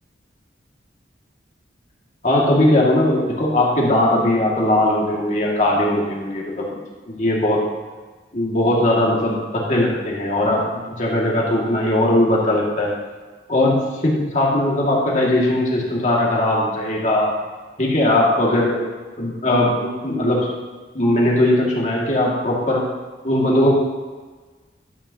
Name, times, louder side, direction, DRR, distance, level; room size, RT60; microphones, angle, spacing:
voice 1, 2.2-6.7 7.1-7.7 8.3-12.9 13.5-17.4 17.8-18.8 19.2-20.5 20.9-22.8 23.2-23.7, left 1 dB, 40° left, -3 dB, 2.0 m, -19 dB
12.0 x 8.8 x 2.8 m, 1.4 s
head